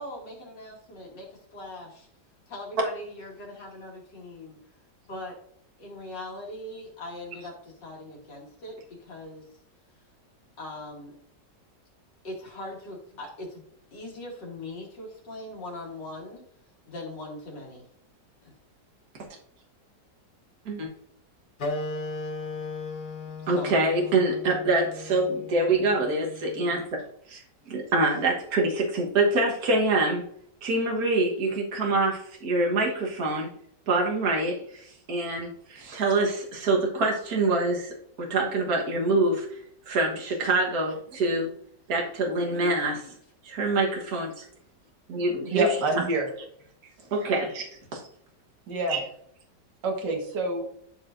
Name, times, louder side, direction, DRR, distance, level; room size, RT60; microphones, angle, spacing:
voice 1, 0.0-2.1 2.5-4.6 5.1-5.3 5.8-9.5 10.6-11.1 12.2-13.6 13.9-16.4 16.9-17.8 18.4-18.5 23.5-23.7 38.9-39.2 42.4-43.1, left 1 dB, 90° left, -2 dB, 3.0 m, -40 dB
Wind instrument woodwind instrument, 21.6-26.7, left 2 dB, 40° left, 0.7 m, -36 dB
voice 2, 23.5-26.9 27.3-30.2 30.6-33.5 33.9-37.9 38.2-39.5 39.9-41.5 41.9-42.9 43.4-44.5 45.1-45.7 47.1-47.7 47.9-48.0 48.9-49.0, right 2 dB, 60° right, -1 dB, 1.8 m, -25 dB
voice 3, 45.5-46.3 47.0-47.1 48.7-49.0 49.8-50.6, right 2 dB, 75° right, 0 dB, 2.0 m, -27 dB
12.0 x 4.9 x 2.6 m, 0.66 s
omnidirectional pair, 1.9 m